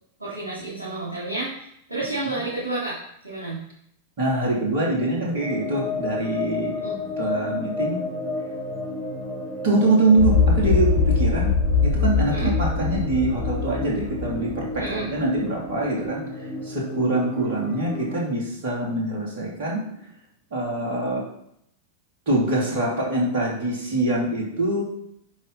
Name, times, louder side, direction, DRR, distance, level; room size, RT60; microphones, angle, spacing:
voice 1, 0.2-3.0 3.2-3.6 6.8-7.0 12.3-12.5 14.8-15.1, right 2 dB, 80° right, -7 dB, 2.7 m, -30 dB
voice 2, 4.2-6.8 7.2-8.0 9.6-11.5 11.8-19.8 20.5-21.2 22.3-24.8, right 2 dB, 55° right, -3 dB, 2.9 m, -24 dB
sound 1, 5.0-18.2, left 2 dB, 5° left, 2.3 m, -32 dB
sound 2, 10.2-14.9 15.2-15.3, left 4 dB, 60° left, 1.2 m, -22 dB
10.5 x 4.7 x 4.1 m, 0.73 s
figure-of-eight pair, 90°, 0 cm